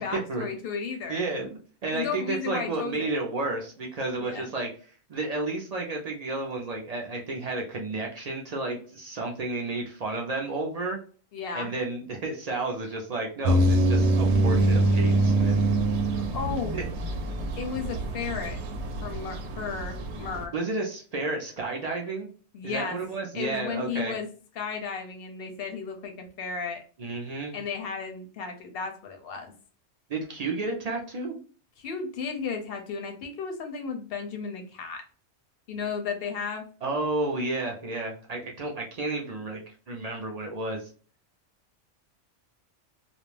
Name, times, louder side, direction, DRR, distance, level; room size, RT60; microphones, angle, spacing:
voice 1, 0.0-1.2 1.9-3.1 4.2-4.5 11.3-11.7 16.1-16.8 17.6-18.6 19.0-20.5 22.5-23.0 23.3-24.3 24.6-26.8 27.5-29.5 31.8-35.0 35.7-36.6, left 5 dB, 65° left, 4 dB, 0.7 m, -34 dB
voice 2, 1.1-4.7 5.1-11.0 11.5-15.6 16.7-16.8 20.5-22.3 22.6-24.1 27.0-27.6 30.1-31.4 36.8-40.9, right 2 dB, 55° right, 1 dB, 0.4 m, -32 dB
sound 1, 13.4-20.4, right 1 dB, 75° right, 0.8 m, -24 dB
2.3 x 2.1 x 3.1 m, 0.41 s
omnidirectional pair, 1.2 m